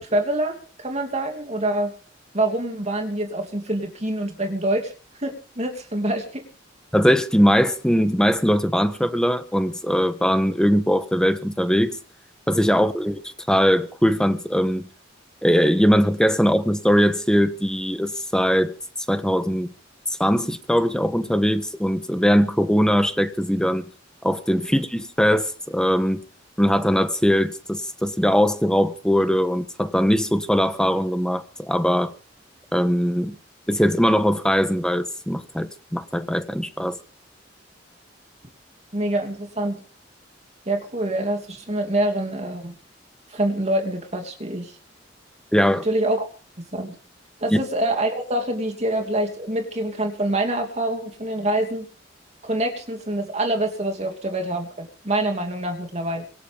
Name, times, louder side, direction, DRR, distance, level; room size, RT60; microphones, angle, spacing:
voice 1, 0.0-1.9 2.3-4.9 5.2-6.4 38.9-39.8 40.7-42.7 43.3-44.7 45.8-46.2 46.7-47.0 47.4-51.9 52.4-56.3, right 1 dB, 35° right, 2.8 m, -25 dB
voice 2, 6.9-12.0 12.5-14.9 15.4-18.7 19.1-19.7 20.2-23.8 24.2-26.2 26.6-32.1 32.7-33.3 33.7-37.0 45.5-45.8 47.5-47.6, equal, 5° left, 1.3 m, -20 dB
25.0 x 8.3 x 5.4 m
head